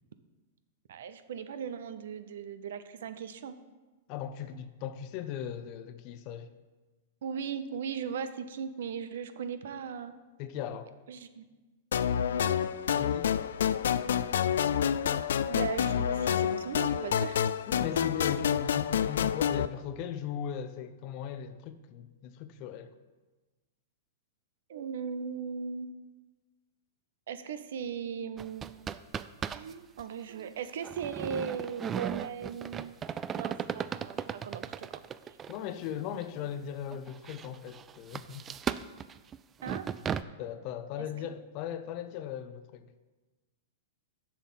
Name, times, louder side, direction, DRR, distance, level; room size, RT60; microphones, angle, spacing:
voice 1, 0.9-3.6 7.2-10.2 11.1-11.4 12.4-12.6 15.5-17.4 24.7-25.9 27.3-28.7 29.5-33.0 33.3-35.4 39.6-39.9 41.0-41.1, right 7 dB, 70° right, 0.7 m, -38 dB
voice 2, 4.1-6.5 10.4-10.9 13.0-13.3 17.7-22.9 35.5-38.4 40.4-42.9, left 9 dB, 45° left, 0.7 m, -38 dB
sound 1, 11.9-19.7, left 9 dB, 75° left, 0.3 m, -28 dB
sound 2, 28.4-29.7 30.0-30.1 30.8-35.6 36.2-36.3 36.9-40.2, right 8 dB, 25° right, 0.3 m, -36 dB
7.3 x 5.6 x 7.3 m
hypercardioid pair, 115°, 0 cm